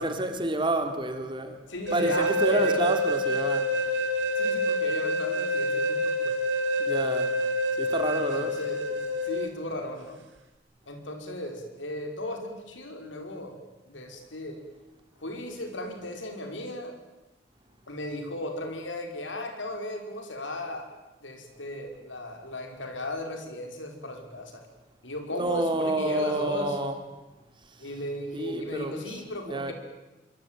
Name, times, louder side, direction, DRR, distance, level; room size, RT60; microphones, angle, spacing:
voice 1, 0.0-1.6 1.9-3.7 6.8-7.3 7.8-8.5 25.3-26.9 28.3-29.0 29.5-29.7, right 2 dB, 25° right, 6 dB, 3.2 m, -29 dB
voice 2, 1.7-2.8 4.4-6.4 8.1-10.2 10.9-13.5 13.8-14.6 15.2-16.9 17.9-20.9 21.2-24.6 25.0-26.8 27.8-29.7, left 1 dB, 85° left, 4 dB, 5.8 m, -36 dB
sound 1, 1.9-9.5, equal, 85° right, 3.5 m, -27 dB
25.5 x 24.5 x 9.3 m, 1.1 s
head